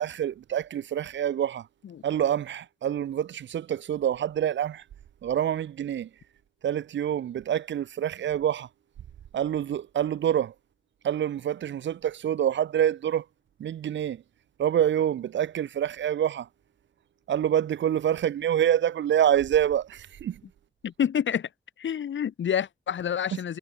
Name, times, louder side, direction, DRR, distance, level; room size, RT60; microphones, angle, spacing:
voice 1, 0.0-1.7 2.0-4.8 5.2-6.1 6.6-8.7 9.3-10.5 11.0-13.2 13.6-14.2 14.6-16.5 17.3-20.4, right 10 dB, 75° right, 0.4 m, -26 dB
voice 2, 20.8-21.5 21.8-23.6, left 8 dB, 80° left, 0.7 m, -28 dB
wide cardioid pair, 140°, 19 cm